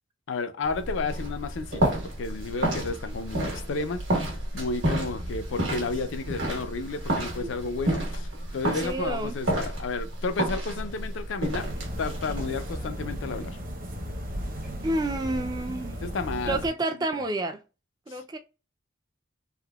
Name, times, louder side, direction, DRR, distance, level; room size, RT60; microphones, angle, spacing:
voice 1, 0.3-4.0 4.5-11.7 12.0-13.6 16.0-16.6 18.1-18.2, left 4 dB, 65° left, 0.4 m, -32 dB
sound 1, 0.6-12.9, right 1 dB, 75° right, 1.3 m, -31 dB
voice 2, 8.7-9.4 14.8-16.0 16.5-17.6 18.1-18.4, right 2 dB, 20° right, 0.3 m, -29 dB
sound 2, 11.5-16.7, equal, 45° right, 0.7 m, -35 dB
3.5 x 2.0 x 2.3 m
head